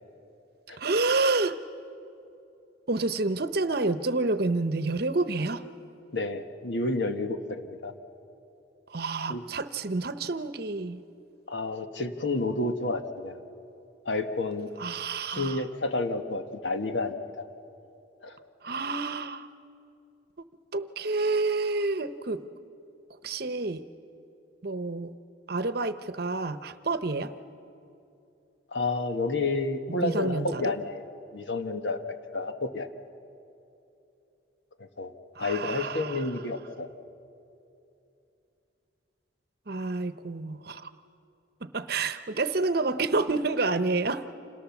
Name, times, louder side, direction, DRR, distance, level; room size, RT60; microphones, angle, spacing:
voice 1, 0.8-1.6 2.9-5.6 8.9-11.0 14.8-15.6 18.6-19.5 20.7-22.5 23.2-23.8 24.6-25.1 25.5-27.3 30.0-30.7 35.3-36.3 39.7-40.9 41.6-44.2, right 3 dB, 55° right, 12 dB, 0.9 m, -29 dB
voice 2, 6.1-7.9 9.3-9.4 11.5-13.4 14.0-14.7 15.3-17.2 18.2-18.4 28.7-31.0 31.3-32.9 34.8-35.1 35.4-36.9, left 2 dB, 70° left, 7 dB, 1.4 m, -30 dB
29.5 x 27.0 x 7.2 m, 2.8 s
head